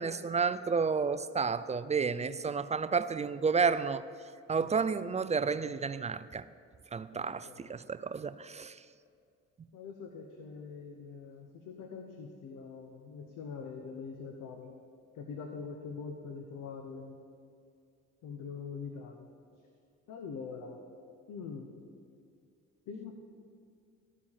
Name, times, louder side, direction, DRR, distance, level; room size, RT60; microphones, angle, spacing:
voice 1, 0.0-4.0 4.5-6.4 6.9-8.8, right 5 dB, 25° right, 0.3 m, -31 dB
voice 2, 7.1-7.8 9.7-14.7 15.1-17.2 18.2-19.3 20.1-20.8 21.3-21.7 22.9-23.2, left 5 dB, 85° left, 1.0 m, -44 dB
13.5 x 5.0 x 7.2 m
cardioid pair, 90°, 30 cm